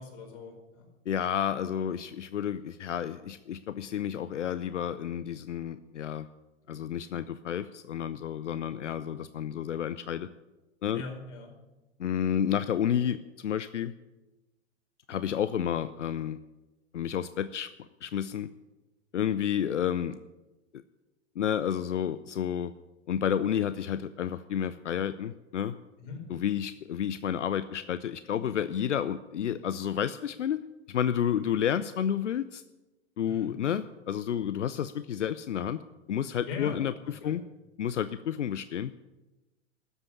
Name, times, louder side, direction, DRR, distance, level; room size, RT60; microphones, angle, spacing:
voice 1, 0.0-0.9 10.9-11.5 26.0-26.2 31.3-31.5 33.3-33.5 36.4-36.8 37.2-37.3, left 5 dB, 45° left, 1 dB, 4.9 m, -41 dB
voice 2, 1.1-6.3 6.7-10.3 10.8-11.0 12.0-13.9 15.1-16.4 16.9-17.7 18.0-18.5 19.1-20.2 21.4-22.7 23.1-25.7 26.3-30.6 30.9-32.6 33.2-35.8 36.1-37.4 37.8-38.9, left 9 dB, 75° left, 13 dB, 0.6 m, -30 dB
13.5 x 8.2 x 10.0 m, 1.1 s
figure-of-eight pair, 100°, 36 cm